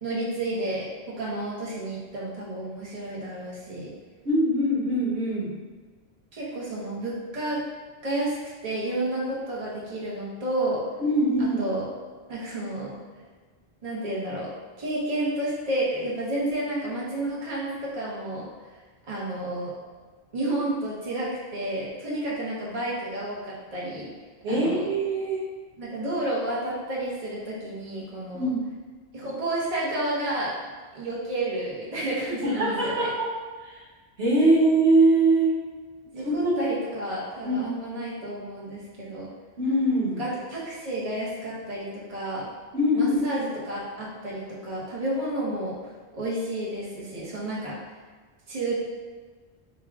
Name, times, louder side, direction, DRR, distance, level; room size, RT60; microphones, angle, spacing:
voice 1, 0.0-3.9 6.3-7.6 8.0-8.4 8.6-10.8 11.4-11.8 12.3-12.9 13.8-14.5 14.8-18.4 19.1-19.7 20.3-24.1 24.5-24.8 25.8-28.5 29.1-30.5 30.9-33.1 36.1-39.3 40.2-42.5 42.9-45.7 46.1-47.7 48.5-48.8, right 1 dB, 35° right, -6 dB, 1.0 m, -31 dB
voice 2, 4.2-5.5 11.0-11.6 24.4-25.4 28.3-28.6 32.4-33.3 33.6-33.8 34.2-35.5 36.2-36.5 37.4-37.7 39.6-40.2 42.7-43.3, right 1 dB, 90° right, -6 dB, 1.4 m, -22 dB
5.3 x 2.3 x 3.5 m, 1.4 s
omnidirectional pair, 1.1 m